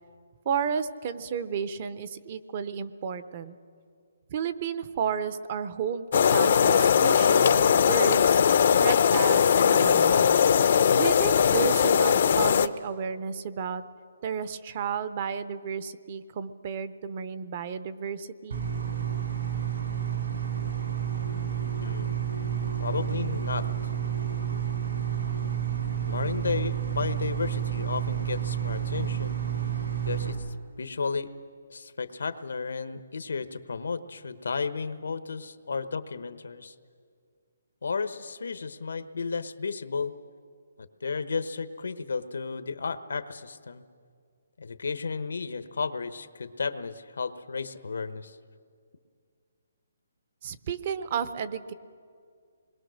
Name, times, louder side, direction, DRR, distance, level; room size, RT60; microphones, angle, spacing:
voice 1, 0.5-3.5 4.3-8.4 8.8-10.5 10.9-13.8 14.2-18.6 50.4-51.7, right 7 dB, 30° right, 13 dB, 0.7 m, -32 dB
sound 1, 6.1-12.7, left 7 dB, 40° left, 0.6 m, -20 dB
sound 2, 18.5-30.3, right 9 dB, 75° right, 5.2 m, -30 dB
voice 2, 21.8-22.2 22.8-23.9 26.0-29.4 30.1-30.4 30.8-31.3 31.7-36.7 37.8-40.1 40.8-43.8 44.6-48.4, left 4 dB, 80° left, 11 dB, 1.1 m, -33 dB
26.5 x 21.5 x 6.4 m, 2.1 s
hypercardioid pair, 175°, 0 cm